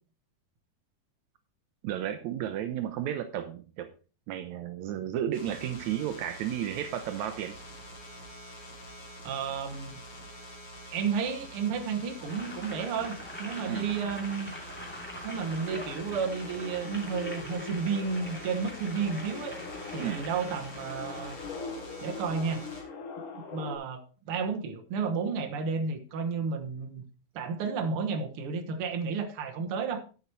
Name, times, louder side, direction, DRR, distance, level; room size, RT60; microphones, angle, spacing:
voice 1, 1.8-3.9 4.3-7.6 13.6-13.9 20.0-20.2, right 10 dB, 85° right, 9 dB, 1.6 m, -33 dB
sound 1, 5.3-22.8, equal, 40° left, 3.1 m, -46 dB
voice 2, 9.2-10.0 10.9-14.5 15.2-19.6 19.9-21.3 22.0-22.6 23.5-27.0 27.3-30.0, right 5 dB, 60° right, 5 dB, 1.6 m, -32 dB
Boiling, 12.1-21.6, equal, 5° left, 1.8 m, -44 dB
sound 2, 15.6-23.8, left 5 dB, 65° left, 3.0 m, -43 dB
11.0 x 7.0 x 4.5 m, 0.36 s
omnidirectional pair, 4.2 m